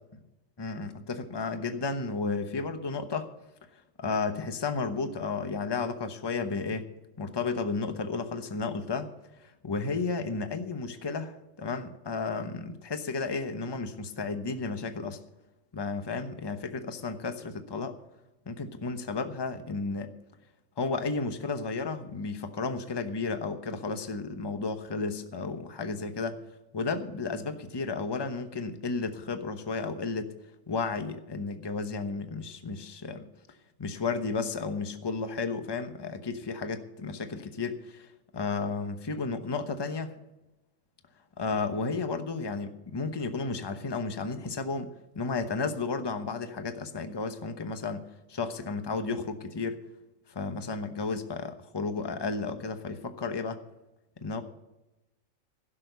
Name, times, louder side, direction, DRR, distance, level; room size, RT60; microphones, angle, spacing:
voice 1, 0.6-3.3 3.7-6.9 7.2-9.1 9.4-15.2 15.7-18.0 18.5-20.1 20.8-26.4 26.7-30.3 30.7-33.3 33.8-38.1 38.3-40.1 41.4-48.0 48.3-49.9 50.3-53.6 54.2-54.4, left 4 dB, 20° left, 8 dB, 0.9 m, -33 dB
16.0 x 6.4 x 8.1 m, 0.97 s
omnidirectional pair, 1.4 m